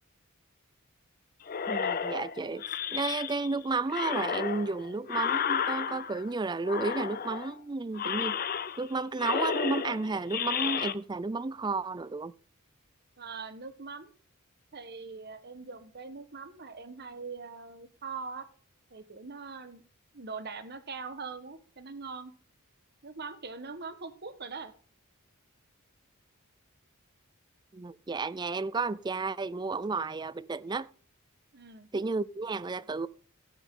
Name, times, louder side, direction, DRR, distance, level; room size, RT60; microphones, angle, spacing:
sound 1, 1.5-3.6 3.9-6.3 6.7-7.6 7.9-8.9 9.2-10.9, left 7 dB, 40° left, 0.6 m, -32 dB
voice 1, 1.7-2.7 2.9-8.4 8.8-12.3 27.7-30.9 31.9-33.1, right 3 dB, 20° right, 0.4 m, -32 dB
voice 2, 13.2-14.1 14.7-18.5 18.9-19.8 20.1-22.3 23.0-24.7 31.5-31.9, right 4 dB, 50° right, 1.3 m, -42 dB
15.5 x 8.0 x 3.7 m
head